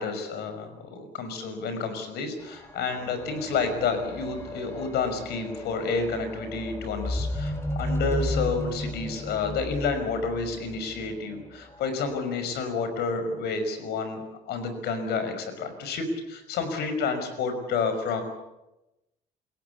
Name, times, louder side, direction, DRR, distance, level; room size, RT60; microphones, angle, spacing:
voice 1, 0.0-18.2, left 4 dB, 75° left, 8 dB, 5.7 m, -30 dB
sound 1, 2.4-11.9 12.7-12.8, left 1 dB, 15° left, 4.0 m, -34 dB
29.0 x 16.5 x 8.5 m, 0.96 s
cardioid pair, 110°, 17 cm